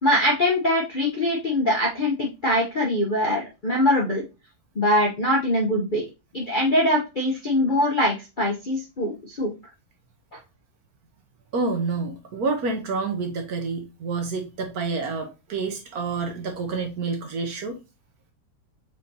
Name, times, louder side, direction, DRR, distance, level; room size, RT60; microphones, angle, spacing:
voice 1, 0.0-4.2 4.8-6.0 6.3-9.5, left 1 dB, 45° left, 0.6 m, -23 dB
voice 2, 11.5-17.8, right 4 dB, 60° right, 1.1 m, -28 dB
5.0 x 3.7 x 2.7 m
omnidirectional pair, 2.1 m